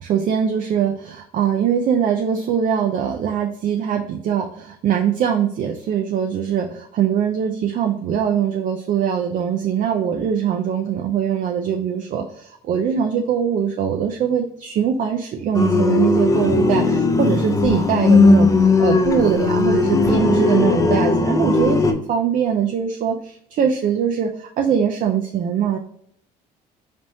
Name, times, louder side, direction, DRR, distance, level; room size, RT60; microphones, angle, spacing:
voice 1, 0.0-18.5 18.8-25.8, right 8 dB, 50° right, 4 dB, 0.4 m, -22 dB
sound 1, 15.5-21.9, left 4 dB, 20° left, 0.5 m, -17 dB
4.1 x 3.4 x 2.7 m, 0.69 s
cardioid pair, 110°, 17 cm